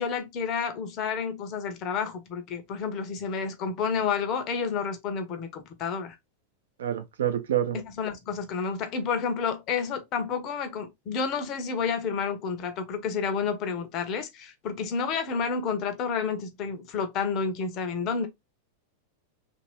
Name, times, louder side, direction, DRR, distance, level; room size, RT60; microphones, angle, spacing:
voice 1, 0.0-6.1 7.7-18.3, left 6 dB, 35° left, 0.7 m, -30 dB
voice 2, 6.8-7.8, right 10 dB, 60° right, 0.6 m, -27 dB
2.9 x 2.6 x 3.0 m
figure-of-eight pair, 90°, 0 cm